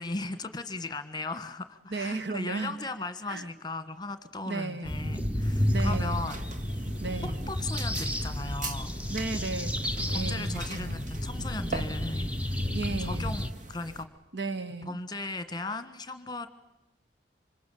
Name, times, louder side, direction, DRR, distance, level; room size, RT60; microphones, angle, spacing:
voice 1, 0.0-6.4 7.5-8.9 10.1-12.7 13.0-14.1 14.8-16.5, left 3 dB, 25° left, 11 dB, 1.5 m, -37 dB
voice 2, 1.9-2.7 3.3-3.4 4.5-5.2 5.7-6.3 7.0-7.5 9.1-11.0 12.7-13.4 14.3-15.0, right 3 dB, 85° right, 7 dB, 1.8 m, -35 dB
sound 1, 4.8-13.5, equal, 10° right, 1.2 m, -31 dB
sound 2, 5.4-14.0, right 3 dB, 45° right, 2.2 m, -43 dB
27.0 x 26.0 x 8.6 m, 0.88 s
head